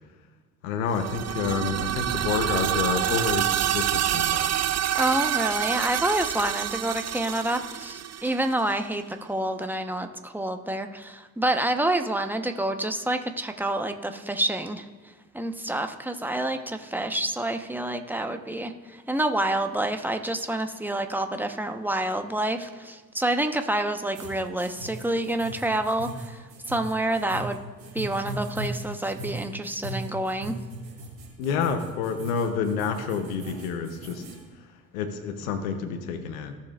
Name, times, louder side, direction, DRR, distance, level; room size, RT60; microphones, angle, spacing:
voice 1, 0.6-4.5 31.4-34.3 34.9-36.5, left 6 dB, 85° left, 8 dB, 1.1 m, -29 dB
sound 1, 0.9-8.7, right 11 dB, 40° right, 0.6 m, -27 dB
voice 2, 4.9-14.9 15.3-27.6 27.9-30.6, right 1 dB, 5° right, 6 dB, 1.1 m, -28 dB
sound 2, 24.1-34.4, right 1 dB, 70° right, 2.9 m, -38 dB
17.0 x 7.1 x 2.5 m, 1.4 s
hypercardioid pair, 50°, 41 cm